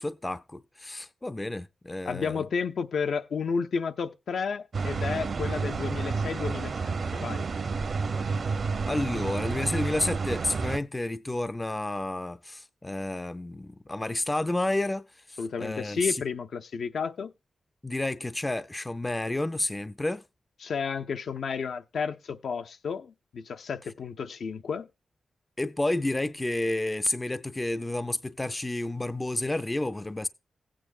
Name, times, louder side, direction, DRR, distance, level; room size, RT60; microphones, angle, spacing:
voice 1, 0.0-2.4 8.9-16.2 17.8-20.2 25.6-30.3, left 2 dB, 15° left, 0.5 m, -30 dB
voice 2, 2.1-7.4 15.4-17.3 20.6-24.9, left 5 dB, 70° left, 0.7 m, -32 dB
sound 1, 4.7-10.8, right 4 dB, 45° right, 0.8 m, -30 dB
16.0 x 8.8 x 2.5 m
wide cardioid pair, 150°, 0 cm